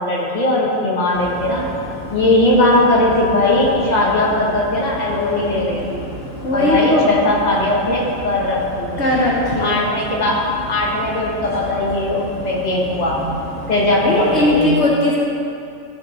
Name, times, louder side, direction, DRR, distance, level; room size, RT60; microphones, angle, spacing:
voice 1, 0.0-1.7 2.1-6.0 6.5-9.1 9.6-13.2 13.7-14.9, left 1 dB, 35° left, -4 dB, 1.5 m, -18 dB
sound 1, 1.1-14.6, equal, 90° left, 2.7 m, -33 dB
voice 2, 6.4-7.1 9.0-9.8 14.0-15.2, left 1 dB, 60° left, -4 dB, 1.4 m, -18 dB
14.0 x 5.2 x 4.1 m, 2.7 s
omnidirectional pair, 1.3 m